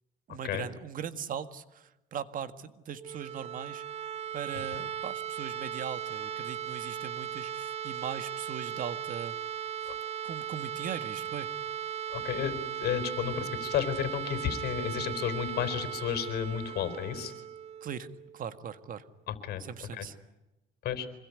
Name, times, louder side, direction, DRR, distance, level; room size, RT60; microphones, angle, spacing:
voice 1, 0.3-3.8 4.3-9.4 9.8-9.9 10.2-11.5 17.8-18.1 18.3-19.1 19.6-20.2, right 8 dB, 55° right, 11 dB, 1.8 m, -39 dB
sound 1, 2.9-18.7, right 10 dB, 40° right, 1.1 m, -37 dB
voice 2, 12.1-17.3 19.3-19.6 19.9-20.0 20.8-21.1, left 9 dB, 70° left, 10 dB, 4.1 m, -32 dB
26.5 x 21.5 x 9.7 m, 0.97 s
cardioid pair, 110°, 17 cm